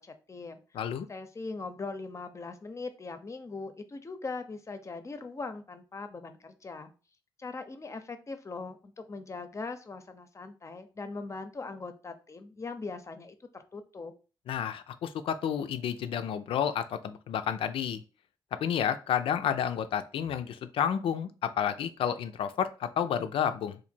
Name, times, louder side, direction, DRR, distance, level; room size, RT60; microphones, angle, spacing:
voice 1, 0.0-0.6 1.1-6.9 7.4-14.1, left 3 dB, 35° left, 8 dB, 0.6 m, -40 dB
voice 2, 0.7-1.1 14.5-18.0 18.6-23.8, left 8 dB, 80° left, 11 dB, 0.4 m, -30 dB
2.8 x 2.5 x 4.3 m, 0.34 s
cardioid pair, 75°, 9 cm